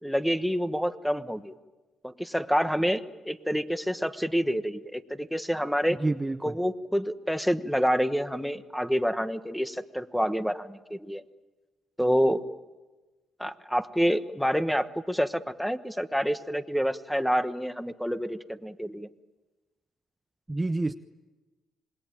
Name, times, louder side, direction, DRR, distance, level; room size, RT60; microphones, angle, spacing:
voice 1, 0.0-1.5 2.0-6.0 6.4-11.2 12.0-12.5 13.4-19.1, equal, ahead, 11 dB, 1.3 m, -28 dB
voice 2, 6.0-6.5 20.5-20.9, right 2 dB, 15° right, 8 dB, 0.8 m, -28 dB
26.5 x 21.5 x 9.2 m, 1.2 s
cardioid pair, 90°, 0 cm